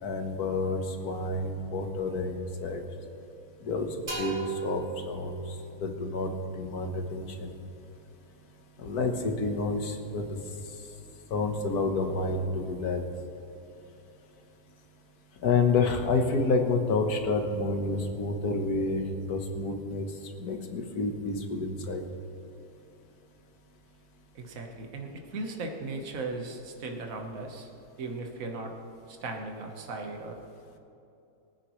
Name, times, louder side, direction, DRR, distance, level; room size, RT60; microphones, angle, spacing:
voice 1, 0.0-2.8 3.6-3.9 4.2-4.3 4.6-5.4 5.8-7.5 8.8-10.3 11.3-13.0 15.4-20.1 20.4-22.0, left 3 dB, 75° left, 4 dB, 1.7 m, -29 dB
sound 1, 4.1-7.7, right 2 dB, 45° right, 2.8 m, -40 dB
voice 2, 24.3-27.7 28.0-28.7 29.1-30.4, right 3 dB, 60° right, 3 dB, 1.6 m, -37 dB
23.0 x 9.7 x 3.1 m, 2.8 s
omnidirectional pair, 1.6 m